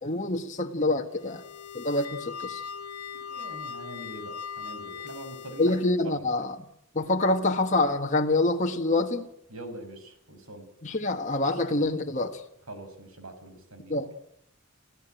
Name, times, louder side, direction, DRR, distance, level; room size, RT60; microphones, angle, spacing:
voice 1, 0.0-1.4 1.7-2.6 5.6-6.5 6.9-9.3 10.8-12.4 13.9-14.1, left 2 dB, 35° left, 1.7 m, -26 dB
sound 1, 1.1-6.0, left 6 dB, 85° left, 1.0 m, -40 dB
voice 2, 3.1-5.8 6.0-6.3 9.5-10.7 12.7-14.0, right 2 dB, 75° right, 5.7 m, -43 dB
28.0 x 15.5 x 9.2 m
head